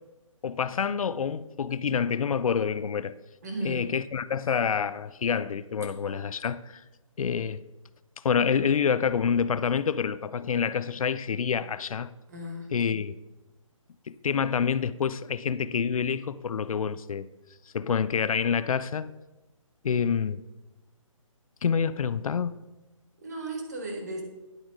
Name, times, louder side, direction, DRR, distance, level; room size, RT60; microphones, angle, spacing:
voice 1, 0.4-3.1 3.6-6.8 7.2-7.6 8.2-12.1 12.7-13.1 14.1-17.3 17.7-19.1 19.8-20.4 21.6-22.5, left 7 dB, 85° left, 0.4 m, -27 dB
voice 2, 3.4-3.9 12.3-13.1 23.2-24.2, right 1 dB, 30° right, 1.2 m, -36 dB
11.0 x 4.7 x 3.8 m
hypercardioid pair, 175°, 17 cm